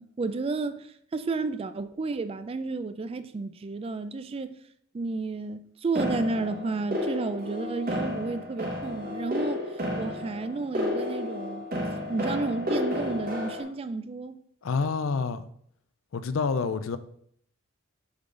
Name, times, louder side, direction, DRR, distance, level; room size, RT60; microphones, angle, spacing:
voice 1, 0.0-4.6 4.9-9.6 10.0-11.7 12.1-14.4, right 3 dB, 30° right, 0.3 m, -32 dB
sound 1, 5.9-13.6, left 1 dB, 45° right, 1.4 m, -32 dB
voice 2, 14.6-15.5 16.1-17.0, left 5 dB, 85° left, 0.5 m, -28 dB
7.0 x 3.8 x 3.8 m
head